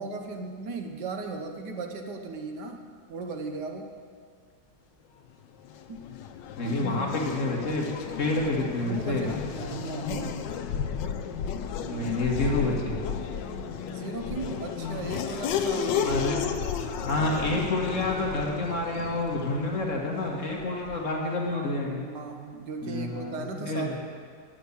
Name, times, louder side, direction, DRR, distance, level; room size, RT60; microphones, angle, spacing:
voice 1, 0.0-2.8 3.1-3.9 5.9-6.1 6.6-7.1 8.8-10.6 11.8-12.1 13.9-16.3 20.7-20.8 21.2-24.0, right 4 dB, 70° right, 4 dB, 1.5 m, -37 dB
Race car auto racing / Accelerating revving vroom, 5.6-21.2, left 7 dB, 85° left, 1.4 m, -33 dB
voice 2, 6.6-7.9 8.2-9.3 11.9-13.0 16.0-16.4 17.0-22.1 22.8-24.0, left 2 dB, 45° left, -1 dB, 1.7 m, -28 dB
10.5 x 6.9 x 8.2 m, 2.2 s
omnidirectional pair, 1.9 m